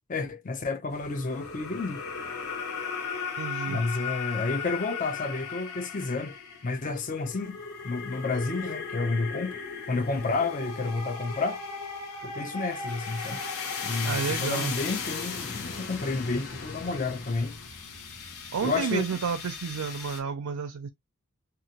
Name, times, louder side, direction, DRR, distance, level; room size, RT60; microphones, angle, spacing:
voice 1, 0.1-2.1 3.7-6.4 6.6-9.6 9.9-11.6 12.2-13.4 13.8-17.6 18.6-19.1, left 3 dB, 35° left, 0.5 m, -30 dB
sound 1, 0.9-20.2, left 5 dB, 85° left, 1.0 m, -37 dB
voice 2, 3.4-3.8 14.0-14.7 18.5-20.9, right 6 dB, 90° right, 0.4 m, -31 dB
2.9 x 2.4 x 2.7 m
head